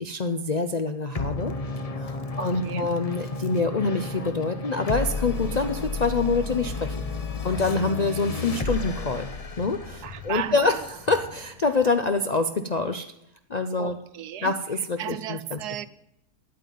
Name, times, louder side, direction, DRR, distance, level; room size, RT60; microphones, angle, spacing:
voice 1, 0.0-1.5 2.0-7.1 7.4-9.3 9.6-13.0 13.5-14.0 14.4-15.6, left 3 dB, 55° left, 0.4 m, -26 dB
sound 1, 1.1-11.9, left 3 dB, 30° left, 0.8 m, -33 dB
voice 2, 2.3-2.9 10.0-10.8 13.8-14.5 15.0-15.9, right 11 dB, 90° right, 1.3 m, -35 dB
11.0 x 9.1 x 9.3 m
omnidirectional pair, 1.6 m